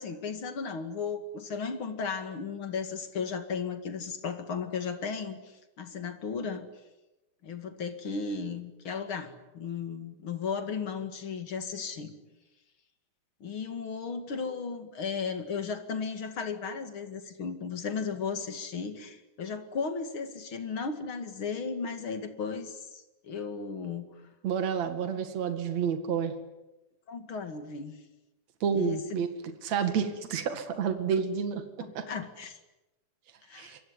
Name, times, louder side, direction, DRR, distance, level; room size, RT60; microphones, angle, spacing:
voice 1, 0.0-6.7 7.4-12.1 13.4-24.1 27.1-28.0 28.7-29.0 31.8-32.6 33.5-33.7, left 5 dB, 45° left, 8 dB, 2.8 m, -35 dB
voice 2, 24.4-26.3 28.6-29.3 29.6-31.6 31.9-32.1 33.6-33.8, right 7 dB, 60° right, 8 dB, 3.2 m, -29 dB
26.5 x 23.0 x 9.7 m, 1.0 s
omnidirectional pair, 3.6 m